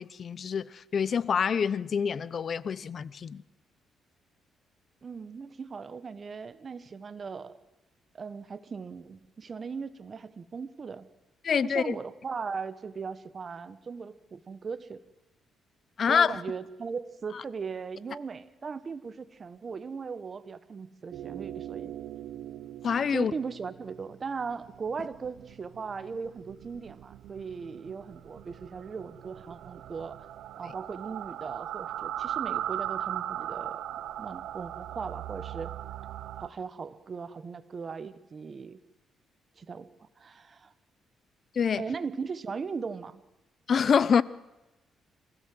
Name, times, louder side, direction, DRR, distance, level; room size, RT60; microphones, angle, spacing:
voice 1, 0.0-3.4 11.4-11.9 16.0-16.4 22.8-23.3 41.5-41.8 43.7-44.2, left 6 dB, 50° left, 0.8 m, -26 dB
voice 2, 5.0-7.6 8.1-11.1 11.6-15.0 16.1-21.9 23.1-30.2 30.6-33.8 34.2-35.7 36.4-38.8 39.6-39.9 40.2-40.7 41.7-43.2, right 5 dB, 40° right, 1.4 m, -38 dB
sound 1, 21.1-36.5, right 11 dB, 80° right, 0.8 m, -39 dB
25.5 x 16.0 x 7.9 m
cardioid pair, 90°, 0 cm